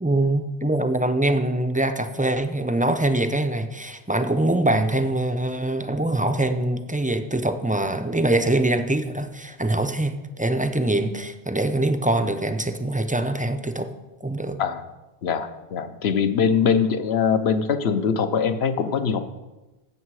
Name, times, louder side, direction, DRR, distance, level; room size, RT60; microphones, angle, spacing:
voice 1, 0.0-13.9 14.2-14.6, right 1 dB, 15° right, 7 dB, 0.3 m, -23 dB
voice 2, 15.2-19.2, left 6 dB, 75° left, 9 dB, 1.0 m, -22 dB
12.5 x 8.2 x 4.7 m, 1.1 s
omnidirectional pair, 1.1 m